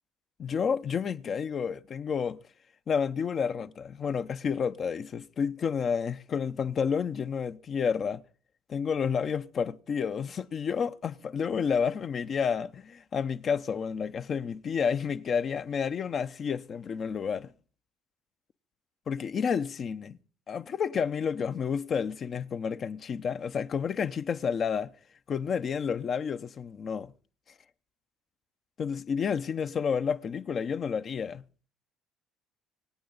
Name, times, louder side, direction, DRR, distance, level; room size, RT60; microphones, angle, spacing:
voice 1, 0.4-2.4 2.9-8.2 8.7-17.5 19.1-20.2 20.5-24.9 25.3-27.1 28.8-31.4, left 6 dB, 45° left, 0.6 m, -30 dB
25.0 x 8.6 x 3.9 m
supercardioid pair, 70°, 0 cm